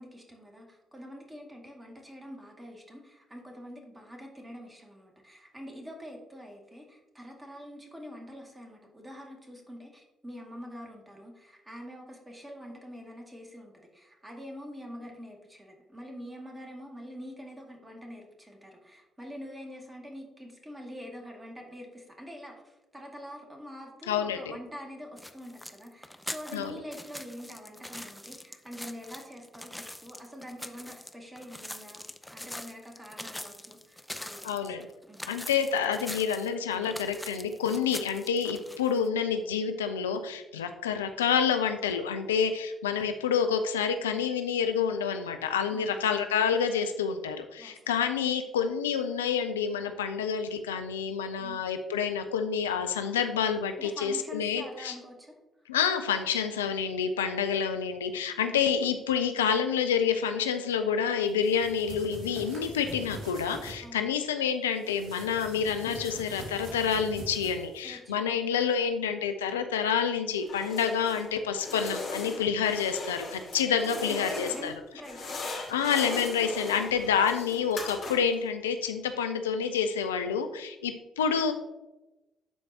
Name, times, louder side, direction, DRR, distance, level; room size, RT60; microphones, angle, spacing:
voice 1, 0.0-32.0 32.3-34.8 35.0-35.3 45.7-46.2 47.6-48.0 51.4-51.6 53.8-55.3 58.4-58.6 63.8-64.1 67.8-68.5 74.1-75.4, equal, 15° right, 1 dB, 2.0 m, -45 dB
voice 2, 24.1-24.5 26.5-26.7 34.4-34.8 35.3-54.9 55.7-74.7 75.7-81.5, left 7 dB, 80° left, 7 dB, 0.4 m, -28 dB
sound 1, 25.2-39.1, left 1 dB, 5° left, 0.6 m, -43 dB
sound 2, 61.3-63.8 64.8-67.9, right 1 dB, 55° right, 2.3 m, -43 dB
sound 3, 70.4-71.3 71.6-74.7 75.0-78.4, left 2 dB, 55° left, 2.4 m, -38 dB
11.5 x 4.5 x 2.8 m, 1.0 s
figure-of-eight pair, 45°, 0 cm